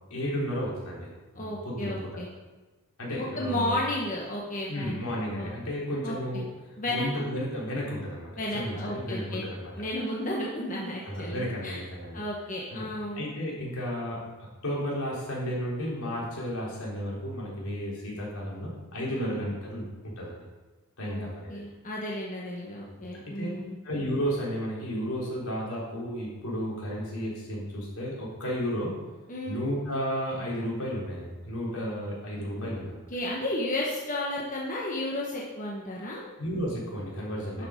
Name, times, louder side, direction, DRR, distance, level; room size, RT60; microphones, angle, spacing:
voice 1, 0.1-2.1 3.0-3.8 4.7-6.5 6.9-9.7 11.0-12.2 12.7-12.9 13.1-14.2 14.6-20.4 21.0-21.6 22.9-23.0 23.3-23.5 23.8-28.9 29.5-33.0 36.4-37.7, equal, 75° left, -5 dB, 4.0 m, -33 dB
voice 2, 1.3-2.3 3.2-5.0 5.3-5.5 6.0-6.2 6.8-7.1 8.4-9.4 9.8-11.8 12.1-13.3 19.1-19.4 21.0-23.8 29.3-29.6 32.6-32.7 33.1-36.2 37.6-37.7, left 1 dB, 35° left, -4 dB, 1.3 m, -33 dB
12.0 x 6.3 x 5.2 m, 1.2 s
head